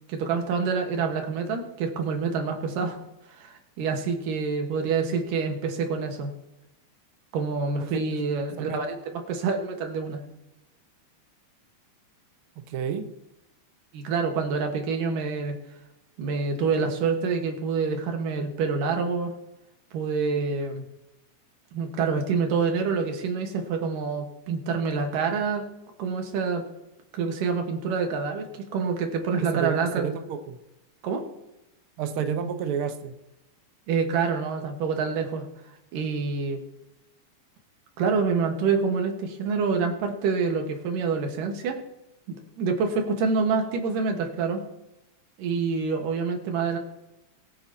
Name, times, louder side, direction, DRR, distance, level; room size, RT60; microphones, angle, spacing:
voice 1, 0.1-3.0 3.4-6.3 7.3-10.2 13.9-15.6 16.2-19.3 19.9-20.8 21.7-25.6 26.0-26.6 27.1-30.1 31.0-31.2 33.9-35.5 35.9-36.6 38.0-41.8 42.3-44.6 45.4-46.8, right 5 dB, 90° right, 4 dB, 3.1 m, -27 dB
voice 2, 12.6-13.1 29.4-30.6 32.0-33.1, right 7 dB, 70° right, 7 dB, 1.3 m, -30 dB
21.5 x 9.0 x 2.9 m, 0.94 s
omnidirectional pair, 3.7 m